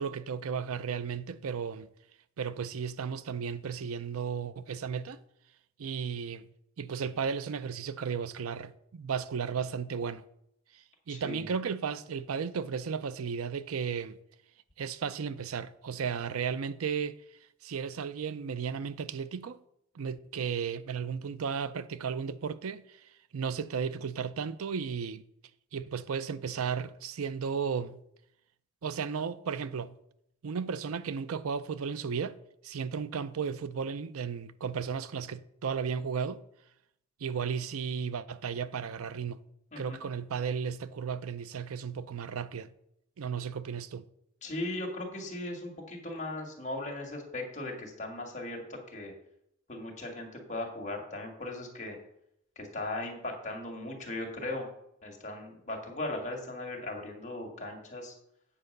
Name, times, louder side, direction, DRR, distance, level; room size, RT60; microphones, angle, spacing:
voice 1, 0.0-1.9 2.4-5.2 5.8-6.5 6.8-10.2 10.7-14.2 14.8-17.2 17.6-19.6 19.9-23.0 23.3-25.2 25.7-28.0 28.8-30.0 30.4-32.4 32.6-36.4 37.2-39.4 39.8-42.7 43.2-44.0, right 6 dB, 75° right, 0.5 m, -34 dB
voice 2, 11.1-11.5 39.7-40.1 44.4-49.1 49.7-52.0 52.6-54.7 55.0-58.2, left 2 dB, 35° left, 2.1 m, -38 dB
8.7 x 4.8 x 6.6 m
head